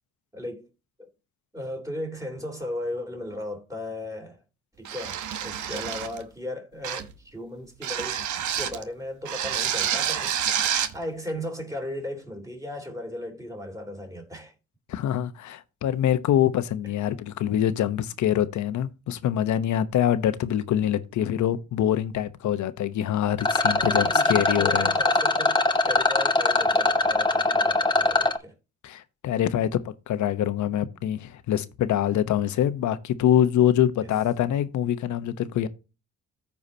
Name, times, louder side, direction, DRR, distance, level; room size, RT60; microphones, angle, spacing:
voice 1, 0.3-0.7 1.0-1.1 1.5-4.4 4.8-10.4 10.9-14.5 23.7-28.5 34.0-34.1, left 1 dB, 10° right, 3.3 m, -36 dB
sound 1, 4.8-6.2 6.8-7.2 7.8-8.8 9.2-11.0, right 9 dB, 75° right, 1.0 m, -28 dB
voice 2, 14.9-24.9 28.8-35.7, left 11 dB, 70° left, 0.9 m, -25 dB
Rattle, 23.4-28.4, left 2 dB, 15° left, 0.9 m, -22 dB
14.0 x 4.8 x 2.8 m
cardioid pair, 90°, 30 cm